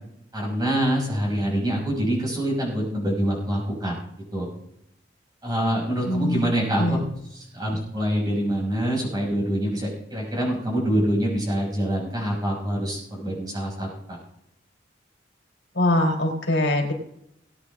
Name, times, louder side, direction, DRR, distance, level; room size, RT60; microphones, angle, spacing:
voice 1, 0.3-3.9 4.3-4.5 5.4-7.0 7.5-13.9, right 1 dB, 20° right, -3 dB, 6.2 m, -25 dB
voice 2, 6.1-6.5 6.8-7.0 15.7-16.9, left 1 dB, 75° left, 2 dB, 3.8 m, -22 dB
20.0 x 9.6 x 3.7 m, 0.77 s
head